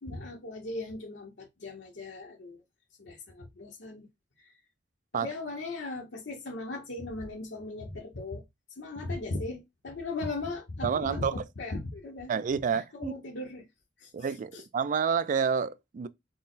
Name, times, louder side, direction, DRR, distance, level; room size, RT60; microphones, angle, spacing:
voice 1, 0.0-2.6 3.0-4.1 4.4-4.5 5.1-8.4 8.8-12.3 12.7-13.7 14.0-14.1 14.5-14.6, left 2 dB, 85° left, 0.8 m, -38 dB
voice 2, 10.8-11.4 12.3-13.1 14.1-16.1, right 6 dB, 45° right, 0.3 m, -29 dB
4.1 x 2.0 x 3.7 m
head